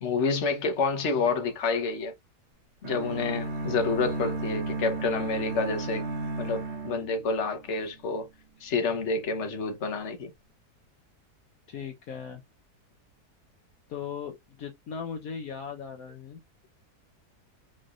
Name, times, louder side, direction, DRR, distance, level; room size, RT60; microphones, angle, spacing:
voice 1, 0.0-2.1 2.8-6.0 6.4-8.3 8.6-10.3, left 4 dB, 50° left, 1.4 m, -28 dB
sound 1, 2.8-7.8, right 3 dB, 45° right, 1.5 m, -34 dB
voice 2, 11.7-12.4 13.9-16.4, left 7 dB, 65° left, 1.3 m, -38 dB
5.5 x 3.5 x 2.4 m
omnidirectional pair, 1.7 m